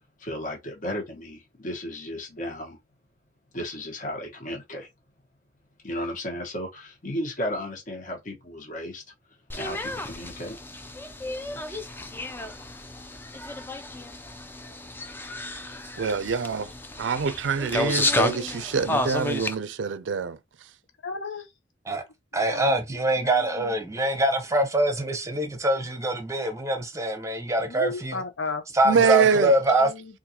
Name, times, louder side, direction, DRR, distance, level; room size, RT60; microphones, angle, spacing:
voice 1, 0.2-2.8 3.5-4.9 5.8-9.0 9.5-10.6 11.5-11.7 12.1-12.3, left 1 dB, 45° left, 1.2 m, -34 dB
sound 1, 9.5-19.6, left 2 dB, 10° left, 0.4 m, -31 dB
voice 2, 16.0-16.7 17.0-20.4 28.8-29.5, right 6 dB, 80° right, 0.4 m, -25 dB
voice 3, 21.0-21.5 22.5-22.8 23.1-23.7 27.7-28.6 28.9-29.4 29.8-30.2, left 4 dB, 75° left, 0.8 m, -35 dB
voice 4, 22.3-28.2 28.7-29.9, right 1 dB, 15° right, 0.8 m, -24 dB
3.9 x 2.6 x 2.8 m
head